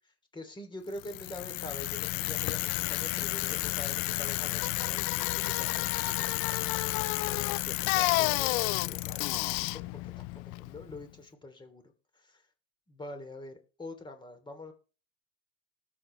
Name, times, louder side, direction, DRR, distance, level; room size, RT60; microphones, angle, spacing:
voice 1, 0.3-6.4 7.2-9.2 9.7-12.4 12.9-14.7, left 2 dB, 15° left, 6 dB, 3.1 m, -45 dB
Bicycle, 1.0-11.0, left 22 dB, 45° left, 0.4 m, -31 dB
19.5 x 7.3 x 3.3 m, 0.36 s
hypercardioid pair, 100°, 31 cm